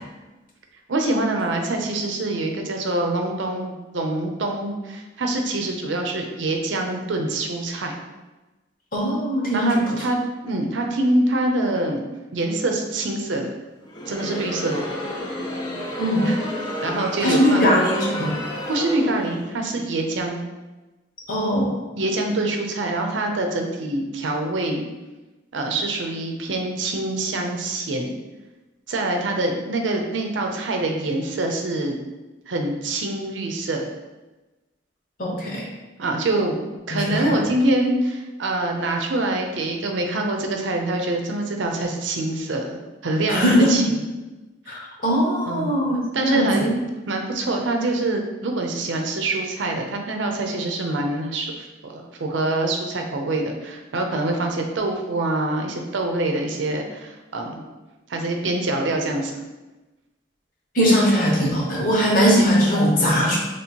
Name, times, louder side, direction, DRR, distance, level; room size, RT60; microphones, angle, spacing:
voice 1, 0.9-7.9 9.5-10.2 10.4-12.0 12.3-13.5 14.1-14.9 16.3-16.4 16.8-17.8 18.7-20.4 22.0-24.9 25.5-28.1 28.9-32.0 32.5-33.9 36.0-36.6 36.9-44.0 45.5-45.7 46.1-46.8 47.1-57.6 58.1-59.4, right 2 dB, 85° right, 3 dB, 0.6 m, -25 dB
voice 2, 8.9-9.8 16.0-16.4 17.2-18.3 21.3-21.7 35.2-35.7 37.1-37.3 43.3-43.9 44.7-46.6 60.7-63.4, equal, 50° left, -4 dB, 1.1 m, -20 dB
Crowd, 13.8-19.6, equal, 20° left, 0.6 m, -31 dB
3.0 x 2.9 x 4.3 m, 1.1 s
head